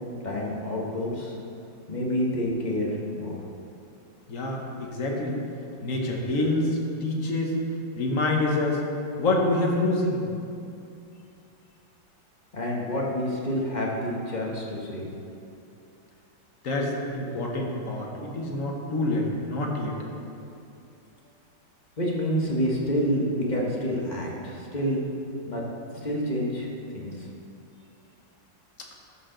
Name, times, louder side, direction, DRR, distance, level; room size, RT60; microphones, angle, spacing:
voice 1, 0.2-1.4 1.9-3.4 12.5-15.1 22.0-25.0 25.5-25.6 26.0-26.7 26.9-27.3, equal, 30° left, -3 dB, 1.0 m, -28 dB
voice 2, 4.3-5.4 5.8-7.6 8.0-8.8 9.2-10.2 16.6-20.0, left 2 dB, 45° left, 0 dB, 1.4 m, -26 dB
12.5 x 6.6 x 3.9 m, 2.6 s
omnidirectional pair, 2.1 m